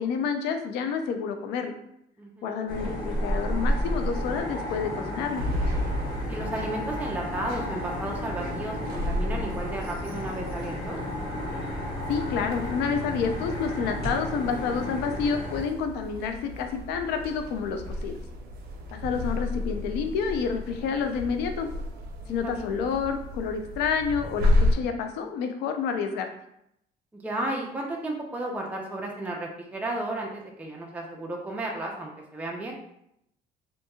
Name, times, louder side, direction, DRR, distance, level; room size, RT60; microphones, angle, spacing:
voice 1, 0.0-1.7 2.4-5.4 12.1-18.2 18.9-21.7 22.3-26.3, left 6 dB, 85° left, 6 dB, 0.4 m, -29 dB
voice 2, 2.2-2.5 6.3-11.0 22.2-22.7 27.1-32.8, right 2 dB, 10° right, -1 dB, 0.4 m, -33 dB
sound 1, 2.7-15.6, equal, 60° left, 1.4 m, -32 dB
sound 2, 5.2-24.8, left 1 dB, 70° right, 0.5 m, -32 dB
2.8 x 2.6 x 2.3 m, 0.77 s
cardioid pair, 110°, 17 cm